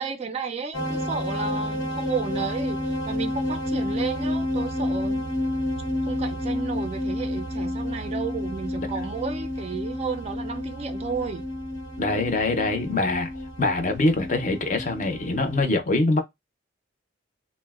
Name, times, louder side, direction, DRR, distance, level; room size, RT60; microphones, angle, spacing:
voice 1, 0.0-5.2 6.0-11.4, right 5 dB, 30° right, 0.3 m, -32 dB
sound 1, 0.7-15.6, left 1 dB, 90° left, 1.0 m, -30 dB
voice 2, 12.0-13.3 13.6-16.2, left 2 dB, 40° left, 0.5 m, -24 dB
3.8 x 2.1 x 2.3 m
head